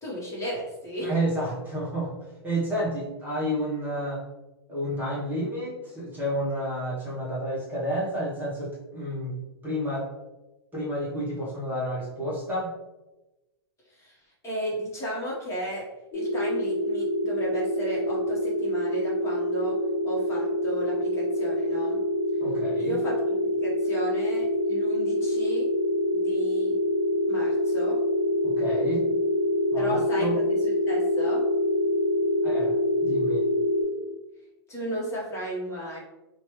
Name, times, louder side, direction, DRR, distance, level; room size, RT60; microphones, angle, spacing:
voice 1, 0.0-1.1 13.9-14.2 14.4-15.8 16.1-19.8 20.0-22.0 22.8-25.7 26.1-26.8 27.3-28.0 29.7-31.4 34.7-36.0, equal, 20° left, -6 dB, 1.0 m, -34 dB
voice 2, 1.0-2.1 2.4-4.2 4.7-9.4 9.6-10.1 10.7-12.7 22.4-23.0 28.4-29.0 29.7-30.4 32.4-32.7 33.0-33.4, equal, 15° right, -7 dB, 0.9 m, -30 dB
sound 1, 16.1-33.8, left 1 dB, 50° left, 0.8 m, -26 dB
3.1 x 2.2 x 3.0 m, 1.0 s
hypercardioid pair, 115°, 14 cm